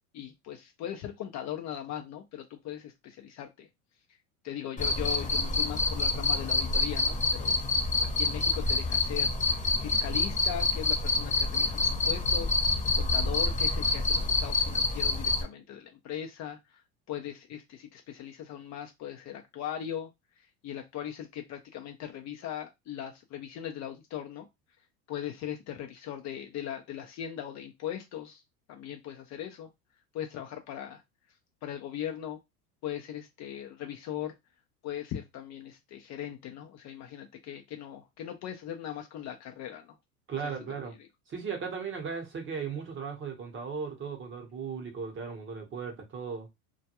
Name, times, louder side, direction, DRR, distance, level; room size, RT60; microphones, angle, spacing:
voice 1, 0.1-3.7 4.4-7.6 8.1-9.3 9.8-12.6 12.9-16.8 17.1-20.1 20.4-24.5 25.1-28.4 28.7-29.7 30.1-31.0 31.6-32.4 32.8-34.3 34.8-40.0 40.4-40.7, left 10 dB, 40° left, 0.5 m, -39 dB
Cricket, 4.8-15.4, left 3 dB, 15° left, 0.9 m, -27 dB
voice 2, 40.3-40.9 41.3-46.5, right 6 dB, 25° right, 0.9 m, -37 dB
2.2 x 2.1 x 2.8 m
hypercardioid pair, 95°, 46 cm